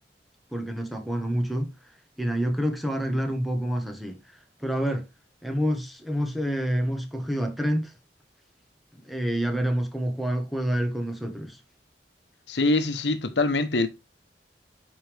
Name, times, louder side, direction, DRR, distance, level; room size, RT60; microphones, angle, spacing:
voice 1, 0.5-1.7 2.2-4.2 4.6-5.0 5.4-7.9 9.0-11.6, equal, ahead, 1.3 m, -27 dB
voice 2, 12.5-13.9, left 2 dB, 80° left, 1.1 m, -24 dB
8.2 x 5.3 x 3.4 m
head